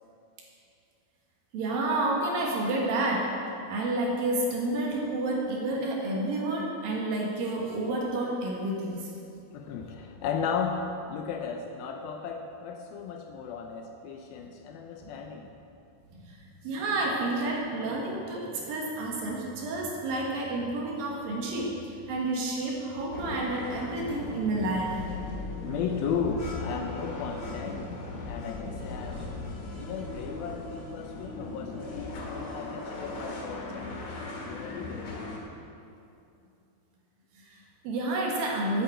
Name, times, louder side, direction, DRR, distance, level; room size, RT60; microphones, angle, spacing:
voice 1, 1.5-3.3 3.7-9.1 16.3-25.0 37.4-38.8, right 2 dB, 65° right, -2 dB, 3.0 m, -30 dB
voice 2, 9.5-15.5 25.6-27.9 28.3-29.4 29.8-35.3, left 6 dB, 80° left, 4 dB, 2.3 m, -35 dB
sound 1, 23.1-35.4, left 2 dB, 60° left, 3.2 m, -38 dB
8.9 x 8.5 x 7.8 m, 2.6 s
omnidirectional pair, 4.7 m